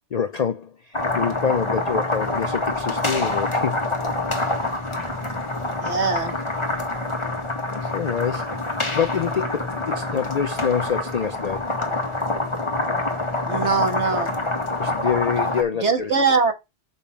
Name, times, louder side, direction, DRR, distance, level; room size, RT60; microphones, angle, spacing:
voice 1, 0.1-3.9 7.7-11.7 14.8-16.1, left 7 dB, 55° left, 0.4 m, -26 dB
sound 1, 0.9-15.6, left 2 dB, 25° left, 1.7 m, -26 dB
voice 2, 5.8-6.4 13.5-14.4 15.8-16.5, right 4 dB, 60° right, 2.0 m, -21 dB
6.8 x 5.4 x 5.7 m
omnidirectional pair, 1.3 m